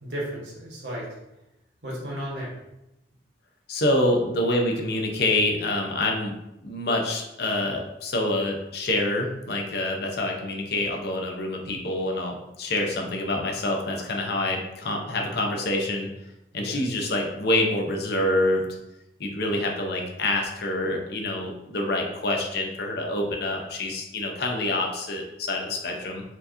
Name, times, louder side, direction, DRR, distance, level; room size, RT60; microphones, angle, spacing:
voice 1, 0.0-1.1 1.8-2.6 16.5-16.8 19.5-19.9, equal, 70° right, -4 dB, 1.3 m, -34 dB
voice 2, 3.7-6.3 6.6-16.1 16.5-18.6 19.2-26.2, left 1 dB, 60° left, 1 dB, 0.7 m, -26 dB
4.4 x 2.8 x 2.6 m, 0.91 s
head